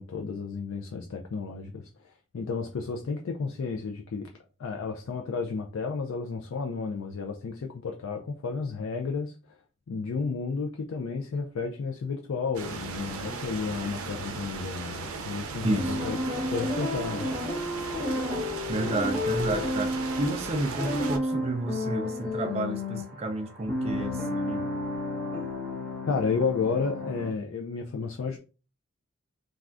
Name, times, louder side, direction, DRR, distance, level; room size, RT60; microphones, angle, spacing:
voice 1, 0.0-1.9 2.3-4.3 4.6-9.4 9.9-16.2 16.5-17.4 26.1-28.4, left 5 dB, 75° left, 0.4 m, -32 dB
sound 1, 12.5-21.2, right 4 dB, 90° right, 0.5 m, -37 dB
voice 2, 15.6-16.0 17.3-17.4 18.7-24.6, right 2 dB, 30° right, 0.3 m, -31 dB
sound 2, 15.7-27.3, left 1 dB, 10° left, 0.9 m, -32 dB
3.3 x 2.3 x 2.4 m
head